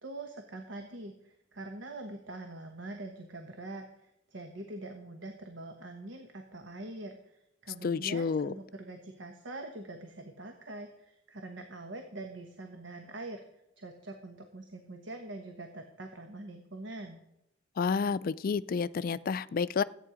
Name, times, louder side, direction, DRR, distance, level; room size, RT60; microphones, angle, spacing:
voice 1, 0.0-13.4 13.8-17.2, right 2 dB, 80° right, 5 dB, 1.1 m, -44 dB
voice 2, 7.8-8.5 17.8-19.8, left 5 dB, 50° left, 14 dB, 0.4 m, -30 dB
14.0 x 8.9 x 5.0 m, 0.83 s
head